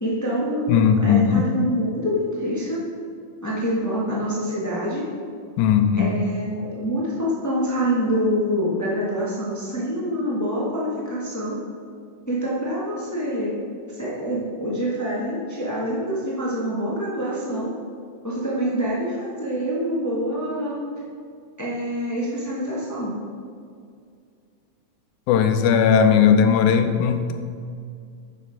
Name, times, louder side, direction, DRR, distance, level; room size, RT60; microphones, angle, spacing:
voice 1, 0.0-2.9 3.4-5.0 6.0-11.6 12.3-13.5 13.9-17.7 18.2-20.8 21.6-23.1, equal, 30° left, -7 dB, 0.3 m, -26 dB
voice 2, 0.7-1.5 5.6-6.2 25.3-27.3, left 7 dB, 90° left, 7 dB, 2.1 m, -18 dB
7.9 x 6.7 x 4.9 m, 2.2 s
omnidirectional pair, 3.4 m